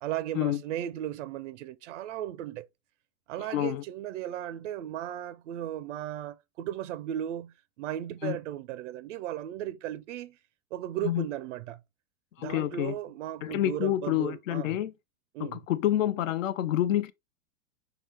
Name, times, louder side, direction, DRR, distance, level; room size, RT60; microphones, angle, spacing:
voice 1, 0.0-2.7 3.3-10.4 10.7-11.8 12.4-14.8 15.3-15.6, right 12 dB, 60° right, 0.6 m, -36 dB
voice 2, 3.4-3.8 8.2-8.4 11.0-11.3 12.4-12.9 13.4-14.9 15.4-17.1, left 12 dB, 65° left, 0.7 m, -28 dB
5.8 x 2.7 x 3.3 m
hypercardioid pair, 105°, 42 cm